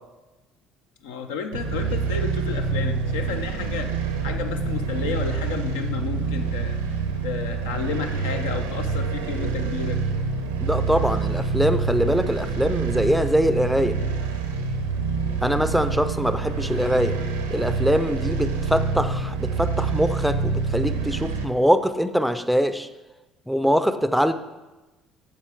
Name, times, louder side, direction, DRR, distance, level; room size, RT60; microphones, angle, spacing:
voice 1, 1.0-3.9 4.2-6.8 7.2-10.0, left 6 dB, 75° left, 6 dB, 0.5 m, -31 dB
sound 1, 1.5-21.4, right 4 dB, 85° right, 0.7 m, -26 dB
voice 2, 10.6-14.0 15.4-17.2 17.5-22.9 23.5-24.3, equal, ahead, 11 dB, 0.4 m, -23 dB
8.8 x 7.0 x 3.4 m, 1.1 s
figure-of-eight pair, 55°, 0 cm